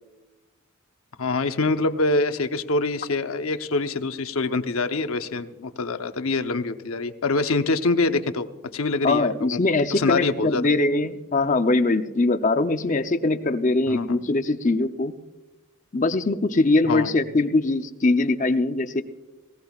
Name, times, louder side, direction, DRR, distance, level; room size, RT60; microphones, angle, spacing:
voice 1, 1.2-8.5 8.7-9.6 9.9-10.6 13.9-14.2 16.8-17.1, left 3 dB, 85° left, 8 dB, 0.9 m, -25 dB
voice 2, 9.0-15.1 15.9-19.0, left 2 dB, 35° left, 8 dB, 0.6 m, -22 dB
19.0 x 18.0 x 2.4 m, 1.1 s
head